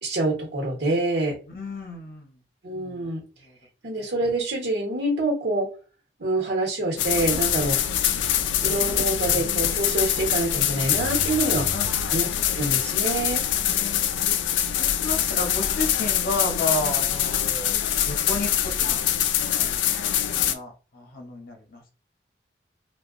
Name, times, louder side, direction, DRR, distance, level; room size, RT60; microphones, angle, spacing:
voice 1, 0.0-1.4 2.6-3.2 3.8-5.7 6.2-7.8 8.6-11.7 12.1-13.4, right 2 dB, 65° right, 0 dB, 1.0 m, -26 dB
voice 2, 1.5-2.3 2.9-3.1 8.6-8.9 11.7-11.9 13.6-14.1 14.8-17.8 18.0-18.5 18.8-19.0 19.5-19.7 20.3-21.9, left 2 dB, 50° left, 2 dB, 0.7 m, -32 dB
sound 1, 7.0-20.5, left 10 dB, 80° left, 0.3 m, -24 dB
2.7 x 2.2 x 2.4 m, 0.35 s
head